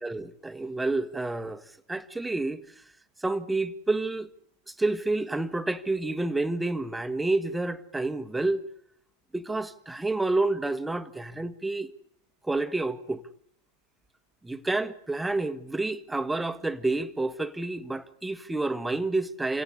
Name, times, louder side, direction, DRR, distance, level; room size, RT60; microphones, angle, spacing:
voice 1, 0.0-1.6 1.9-2.6 3.2-4.3 4.7-8.6 9.3-11.9 12.5-13.2 14.4-19.6, right 2 dB, 10° right, 1.6 m, -29 dB
27.5 x 17.5 x 9.8 m
hypercardioid pair, 95°, 0 cm